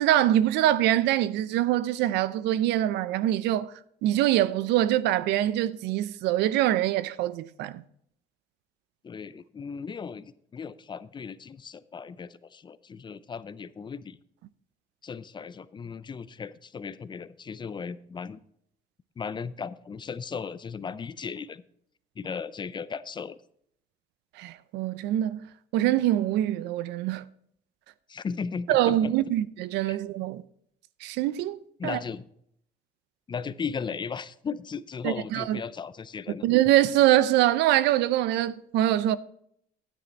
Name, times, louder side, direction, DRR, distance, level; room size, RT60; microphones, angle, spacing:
voice 1, 0.0-3.7 4.0-7.8 24.4-27.2 28.7-30.4 31.0-32.0 35.0-35.6 36.4-39.2, right 13 dB, 85° right, 0.6 m, -24 dB
voice 2, 9.0-14.2 15.0-18.4 19.2-21.6 22.2-23.4 28.1-29.1 29.8-30.0 31.8-32.2 33.3-36.4, left 6 dB, 25° left, 0.5 m, -36 dB
10.0 x 9.3 x 4.1 m
cardioid pair, 110°, 17 cm